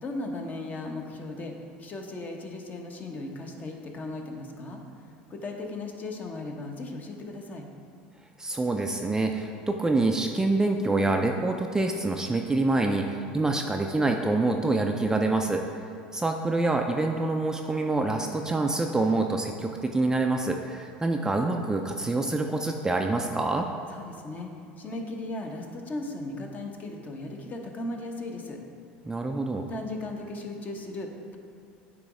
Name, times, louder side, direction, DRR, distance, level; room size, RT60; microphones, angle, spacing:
voice 1, 0.0-1.5 1.8-7.7 23.9-28.6 29.7-31.4, left 2 dB, 35° left, 2 dB, 0.9 m, -37 dB
voice 2, 8.4-15.6 16.1-23.7 29.0-29.7, right 2 dB, 10° right, 3 dB, 0.4 m, -26 dB
8.4 x 3.0 x 4.8 m, 2.5 s
hypercardioid pair, 90°, 5 cm